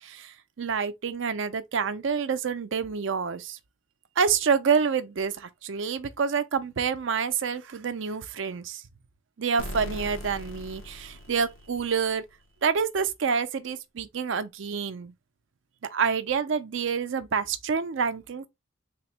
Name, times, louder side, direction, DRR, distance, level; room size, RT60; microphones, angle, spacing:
voice 1, 0.0-3.6 4.2-8.8 9.4-12.2 12.6-15.1 15.9-18.5, right 6 dB, 65° right, 0.5 m, -28 dB
sound 1, 9.6-12.3, left 1 dB, 85° left, 0.9 m, -40 dB
3.6 x 2.0 x 4.2 m
head